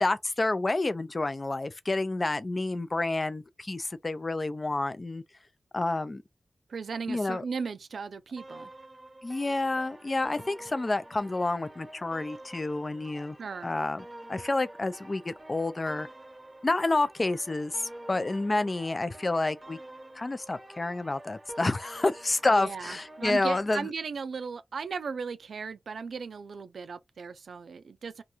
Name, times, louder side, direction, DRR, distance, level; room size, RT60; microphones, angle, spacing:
voice 1, 0.0-5.2 5.7-6.2 7.1-7.4 9.2-13.4 13.6-16.1 16.6-19.8 20.2-23.9, left 2 dB, 35° left, 0.3 m, -29 dB
voice 2, 6.7-8.7 13.4-13.7 22.5-28.2, right 5 dB, 85° right, 0.3 m, -36 dB
sound 1, 8.4-23.4, right 1 dB, 15° right, 0.8 m, -48 dB
2.5 x 2.2 x 2.9 m
wide cardioid pair, 90°, 0 cm